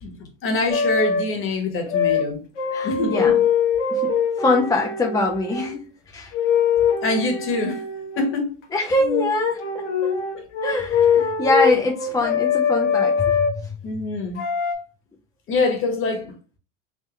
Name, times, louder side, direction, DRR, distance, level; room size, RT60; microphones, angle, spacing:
voice 1, 0.0-2.4 2.8-3.4 7.0-7.8 8.2-8.5 10.3-10.4 11.1-11.2 13.8-14.4 15.5-16.3, left 2 dB, 35° left, 1.4 m, -25 dB
sound 1, 0.7-1.2 1.9-2.3 2.6-5.7 6.3-8.3 9.0-9.3 9.6-13.5 14.4-14.7, left 6 dB, 75° left, 1.3 m, -22 dB
voice 2, 2.7-3.3 3.9-5.8 6.1-6.3 8.7-10.1 10.6-13.8, left 2 dB, 10° left, 0.5 m, -23 dB
3.7 x 3.1 x 3.0 m
hypercardioid pair, 95°, 36 cm